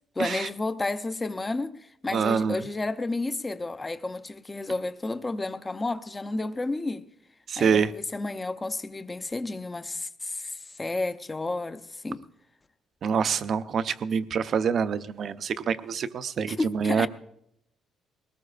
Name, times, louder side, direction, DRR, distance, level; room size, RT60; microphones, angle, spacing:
voice 1, 0.2-7.0 7.6-12.3 16.5-17.1, left 2 dB, 15° left, 0.6 m, -31 dB
voice 2, 2.1-2.6 7.5-7.9 13.0-17.1, right 6 dB, 50° right, 0.6 m, -26 dB
21.5 x 19.0 x 2.5 m
cardioid pair, 135°, 0 cm